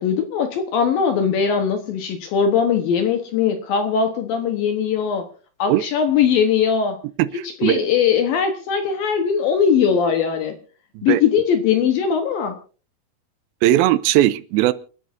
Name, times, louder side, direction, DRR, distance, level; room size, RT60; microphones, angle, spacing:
voice 1, 0.0-5.3 5.6-7.0 7.6-10.5 11.0-12.5, left 7 dB, 70° left, 6 dB, 2.7 m, -20 dB
voice 2, 7.2-7.9 11.0-11.2 13.6-14.7, right 14 dB, 75° right, 14 dB, 2.3 m, -18 dB
28.5 x 10.0 x 2.7 m, 0.39 s
omnidirectional pair, 4.7 m